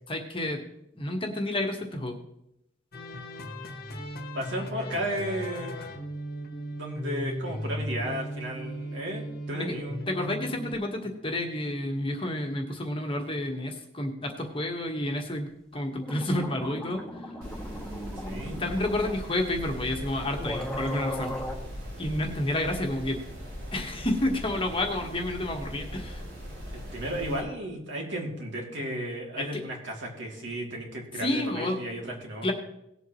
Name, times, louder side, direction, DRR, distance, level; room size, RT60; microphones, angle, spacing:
voice 1, 0.1-0.6 0.9-2.2 9.6-9.7 10.1-17.0 18.6-21.4 22.0-23.2 23.7-26.2 29.4-29.6 31.2-31.8 32.4-32.5, left 1 dB, 30° left, 2 dB, 1.4 m, -30 dB
sound 1, 2.9-10.7, equal, 50° left, 1.4 m, -36 dB
voice 2, 4.3-5.7 6.7-10.0 18.2-18.6 26.7-32.5, equal, 65° right, -1 dB, 2.9 m, -34 dB
sound 2, 15.7-15.8 16.0-19.2 20.0-20.1 20.4-21.6, equal, 5° left, 1.6 m, -36 dB
sound 3, 17.4-27.4, equal, 90° right, 4.7 m, -40 dB
18.5 x 8.0 x 3.1 m, 0.83 s
head